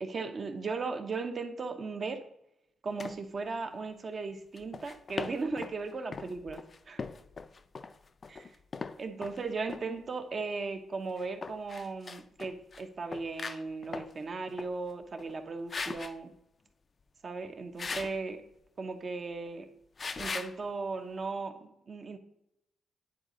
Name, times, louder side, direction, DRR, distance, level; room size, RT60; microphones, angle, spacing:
voice 1, 0.0-2.2 2.8-7.0 8.3-8.5 9.0-16.3 17.2-18.4 18.8-19.7 20.2-22.2, right 4 dB, 40° right, 0.7 m, -37 dB
sound 1, 3.0-3.2 4.6-5.8 6.1-9.4 9.7-9.9 11.2-12.8 13.1-14.1 14.5-14.7 15.2-15.4 15.7-16.1 17.8-18.2 20.0-20.5, left 4 dB, 35° left, 0.3 m, -39 dB
9.7 x 4.0 x 3.7 m
cardioid pair, 125°, 0 cm